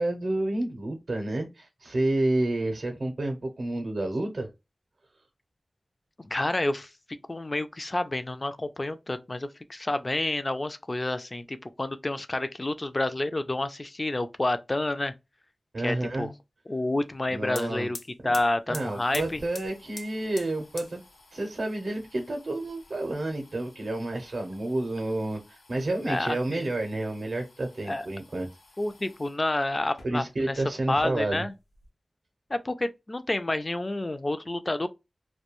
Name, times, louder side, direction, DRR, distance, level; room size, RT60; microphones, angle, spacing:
voice 1, 0.0-4.5 15.7-16.3 17.3-17.9 18.7-21.0 21.3-28.5 30.0-31.4, right 2 dB, 70° right, 0.6 m, -30 dB
voice 2, 6.2-6.9 7.3-15.1 15.8-16.3 16.7-18.0 18.2-19.4 26.1-26.6 27.9-28.1 28.8-31.5 32.5-34.9, left 2 dB, 30° left, 0.3 m, -29 dB
sound 1, 17.1-17.2 17.4-29.4 29.8-30.6 30.9-31.9, left 2 dB, 85° left, 0.5 m, -48 dB
2.3 x 2.2 x 2.9 m
wide cardioid pair, 90°, 0 cm